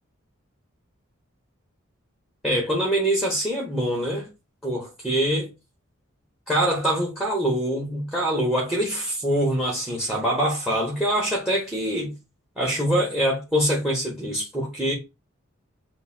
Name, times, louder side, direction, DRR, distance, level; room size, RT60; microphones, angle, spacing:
voice 1, 2.4-4.3 4.6-5.5 6.5-12.1 12.6-14.9, right 1 dB, 5° right, 1.3 m, -24 dB
6.6 x 2.8 x 2.7 m
head